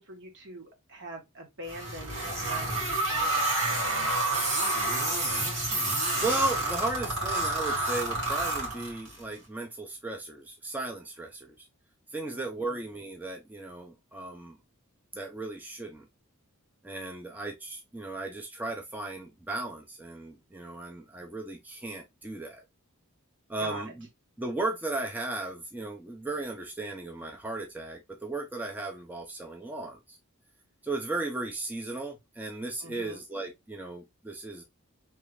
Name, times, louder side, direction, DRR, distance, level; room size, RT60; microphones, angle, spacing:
voice 1, 0.0-4.2 12.2-12.8 23.6-23.9 32.8-33.2, right 1 dB, 60° right, 1.1 m, -44 dB
sound 1, 1.7-9.2, right 2 dB, 80° right, 1.8 m, -29 dB
voice 2, 6.2-11.7 12.1-14.6 15.1-16.1 16.8-22.6 23.5-24.1 24.4-30.2 30.8-34.6, right 2 dB, 10° right, 0.5 m, -35 dB
3.2 x 2.4 x 3.2 m
head